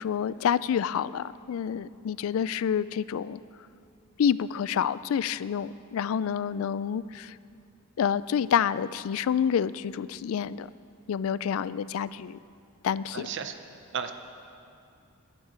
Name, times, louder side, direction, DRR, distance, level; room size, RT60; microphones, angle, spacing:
voice 1, 0.0-3.4 4.2-7.4 8.0-10.7 11.1-12.4 12.8-13.3, left 8 dB, 65° left, 17 dB, 0.3 m, -28 dB
voice 2, 13.1-13.6 13.9-14.1, right 7 dB, 55° right, 8 dB, 0.6 m, -33 dB
11.5 x 9.3 x 7.4 m, 2.5 s
head